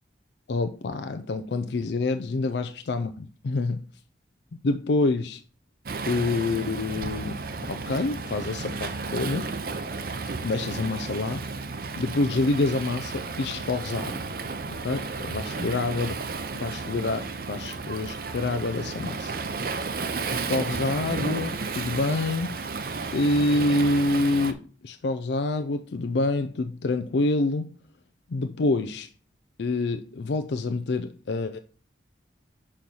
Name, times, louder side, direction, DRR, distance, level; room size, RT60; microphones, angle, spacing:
voice 1, 0.5-3.8 4.6-5.4 6.1-7.4 7.7-9.5 10.4-11.5 12.0-14.2 14.7-16.2 16.6-19.3 20.3-22.6 23.1-27.8 28.3-29.1 29.6-31.6, left 2 dB, 70° left, 0.4 m, -27 dB
Waves surf, 5.9-24.5, right 4 dB, 55° right, 0.6 m, -33 dB
6.3 x 4.4 x 5.3 m
head